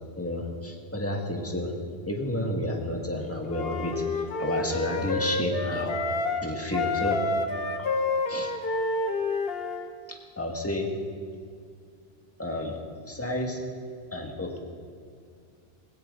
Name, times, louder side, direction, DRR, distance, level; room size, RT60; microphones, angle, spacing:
voice 1, 0.2-1.7 2.1-6.0 6.4-7.2 8.3-8.5 10.1-10.9 12.4-12.8 13.1-13.6 14.1-14.6, left 1 dB, 15° left, 1 dB, 1.7 m, -31 dB
Wind instrument woodwind instrument, 3.5-6.4 6.7-9.9, left 2 dB, 70° left, 1.2 m, -29 dB
18.5 x 17.0 x 3.8 m, 2.3 s
omnidirectional pair, 1.1 m